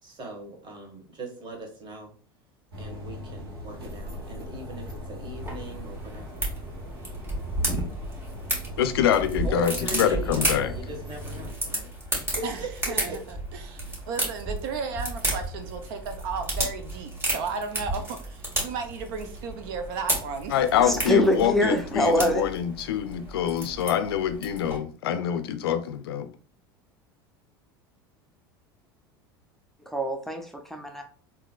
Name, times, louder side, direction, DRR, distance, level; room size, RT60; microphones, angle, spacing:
voice 1, 0.0-2.1 2.8-6.4 9.4-13.2, right 2 dB, 40° right, 1.3 m, -39 dB
sound 1, 2.7-11.6, left 1 dB, 90° right, 1.1 m, -40 dB
sound 2, 5.4-24.8, right 1 dB, 20° right, 1.6 m, -33 dB
voice 2, 8.8-10.7 20.5-26.3, left 9 dB, 80° left, 0.4 m, -25 dB
voice 3, 12.9-13.2 13.6-20.6 20.9-21.0, right 5 dB, 65° right, 0.6 m, -34 dB
voice 4, 20.8-22.4 29.9-31.0, left 1 dB, ahead, 0.6 m, -24 dB
3.7 x 2.7 x 2.3 m
hypercardioid pair, 85°, 13 cm